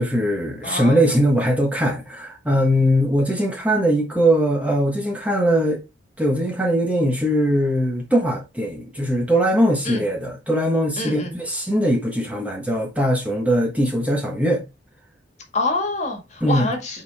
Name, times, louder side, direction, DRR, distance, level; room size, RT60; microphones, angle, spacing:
voice 1, 0.0-5.8 6.2-14.6 16.4-16.7, equal, 10° right, 1.3 m, -20 dB
voice 2, 0.6-1.1 9.8-10.1 11.0-11.4 15.5-17.0, left 2 dB, 35° left, 2.0 m, -26 dB
8.0 x 4.5 x 3.5 m
head